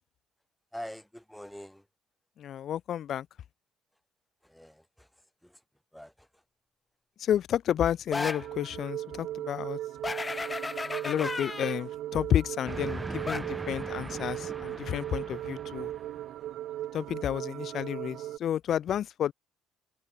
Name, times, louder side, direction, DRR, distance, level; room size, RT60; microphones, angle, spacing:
voice 1, 0.7-1.9 4.4-5.6 5.9-6.4, equal, 5° left, 4.9 m, -45 dB
voice 2, 2.4-3.3 7.2-9.8 11.0-15.9 16.9-19.3, left 10 dB, 55° left, 0.4 m, -31 dB
sound 1, 8.1-8.5 10.0-11.8 13.3-13.4, left 3 dB, 25° left, 0.8 m, -34 dB
sound 2, 8.4-18.4, right 13 dB, 65° right, 1.1 m, -38 dB
Train, 12.6-16.6, right 2 dB, 15° right, 4.9 m, -41 dB
hypercardioid pair, 60°, 0 cm